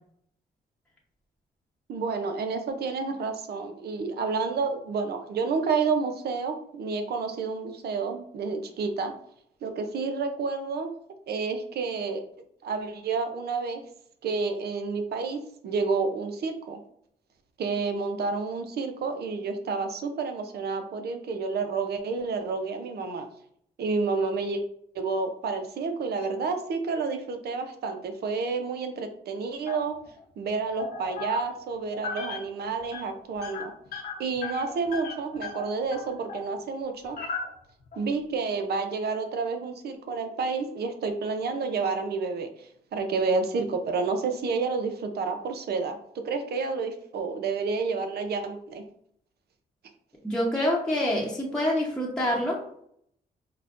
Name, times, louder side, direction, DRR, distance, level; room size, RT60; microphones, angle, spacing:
voice 1, 1.9-9.1 9.6-10.9 11.3-12.2 12.6-13.8 14.2-16.8 17.6-23.3 23.8-24.6 24.9-30.0 30.4-33.7 34.2-37.2 38.0-48.8, right 4 dB, 70° right, 6 dB, 0.6 m, -30 dB
sound 1, 29.7-30.2 30.8-31.6 31.9-32.5 32.8-33.0 33.4-36.5 37.0-38.0, left 5 dB, 65° left, 0.9 m, -37 dB
voice 2, 50.2-52.6, left 1 dB, 5° left, -4 dB, 0.9 m, -26 dB
4.9 x 2.2 x 2.5 m, 0.68 s
supercardioid pair, 60°, 17 cm